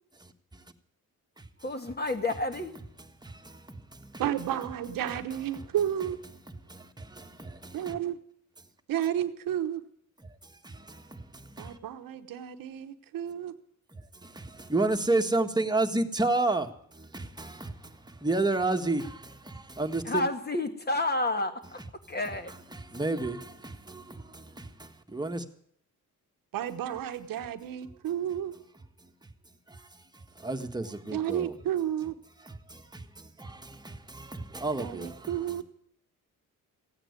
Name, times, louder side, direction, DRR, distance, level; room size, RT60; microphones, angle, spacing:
voice 1, 1.6-2.8 20.0-21.6 22.1-22.5, left 2 dB, 30° left, 1.9 m, -30 dB
voice 2, 3.2-4.2 5.5-5.6 6.7-7.9 10.6-11.8 14.2-20.2 22.7-25.4 29.7-29.8 30.4-31.5 32.4-35.6, right 2 dB, 10° right, 1.6 m, -32 dB
voice 3, 4.2-6.2 7.7-8.2 8.9-9.8 11.6-13.5 26.5-28.5 31.1-32.2 34.8-35.6, right 10 dB, 85° right, 1.1 m, -32 dB
16.0 x 9.0 x 9.6 m
cardioid pair, 80°, 33 cm